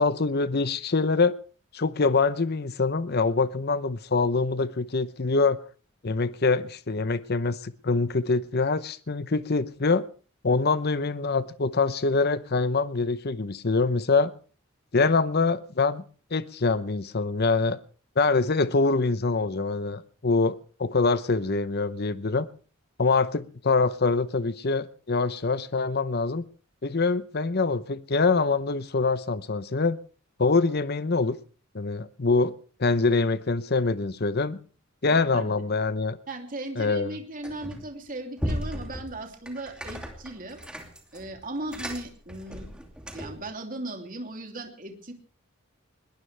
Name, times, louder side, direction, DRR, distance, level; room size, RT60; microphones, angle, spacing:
voice 1, 0.0-1.3 1.7-5.6 6.0-10.1 10.4-14.3 14.9-16.0 16.3-17.8 18.2-22.5 23.0-26.4 26.8-30.0 30.4-31.4 31.7-34.6 35.0-36.2 36.8-37.1, left 3 dB, 45° left, 0.8 m, -24 dB
voice 2, 35.1-35.6 36.3-40.6 41.1-42.7 43.1-45.1, right 2 dB, 40° right, 2.9 m, -37 dB
sound 1, 37.4-38.0 38.4-43.5, equal, 5° right, 2.6 m, -36 dB
21.0 x 19.0 x 3.4 m
head